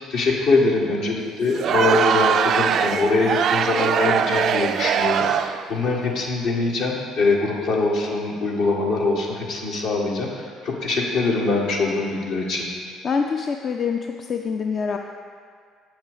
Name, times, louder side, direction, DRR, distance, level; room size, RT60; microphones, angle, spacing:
voice 1, 0.1-12.7, left 3 dB, 70° left, -2 dB, 1.8 m, -23 dB
Crowd, 1.5-5.7, right 8 dB, 60° right, 0.4 m, -21 dB
voice 2, 13.0-15.0, left 5 dB, 45° left, 3 dB, 0.5 m, -25 dB
8.3 x 7.2 x 5.1 m, 2.1 s
supercardioid pair, 70°, 0 cm